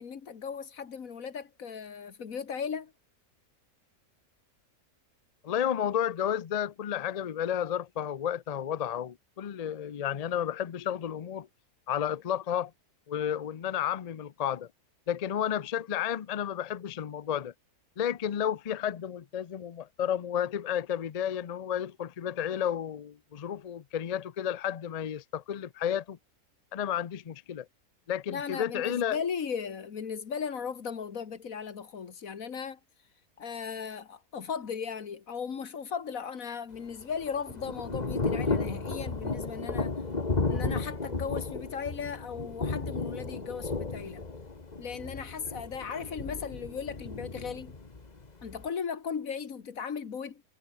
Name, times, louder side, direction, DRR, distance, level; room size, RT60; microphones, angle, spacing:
voice 1, 0.0-2.9 28.3-32.8 33.4-39.9 40.5-44.2 44.8-47.7 48.4-50.4, left 6 dB, 65° left, 2.0 m, -37 dB
voice 2, 5.4-11.5 11.9-12.7 13.1-14.7 15.1-17.5 18.0-26.2 26.7-27.7 28.1-29.2, left 9 dB, 80° left, 0.3 m, -32 dB
Thunder / Rain, 36.7-48.7, left 3 dB, 30° left, 1.7 m, -34 dB
omnidirectional pair, 1.6 m